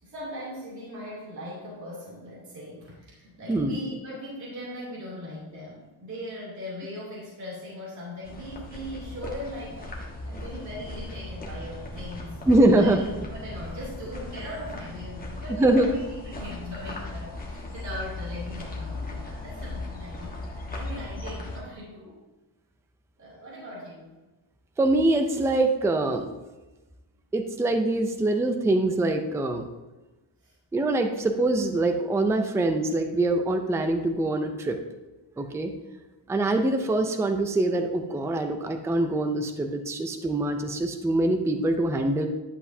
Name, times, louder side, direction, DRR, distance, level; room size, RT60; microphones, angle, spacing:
voice 1, 0.0-12.4 12.8-13.0 13.3-22.2 23.2-24.1 30.4-30.5, equal, 35° right, -6 dB, 2.8 m, -39 dB
sound 1, 8.2-21.6, left 2 dB, 15° left, 1.4 m, -37 dB
voice 2, 12.5-13.0 15.6-16.0 24.8-26.3 27.3-29.6 30.7-34.8 35.4-35.7 36.3-42.3, right 2 dB, 5° right, 6 dB, 0.4 m, -24 dB
11.0 x 7.9 x 2.7 m, 1.1 s
wide cardioid pair, 175°, 49 cm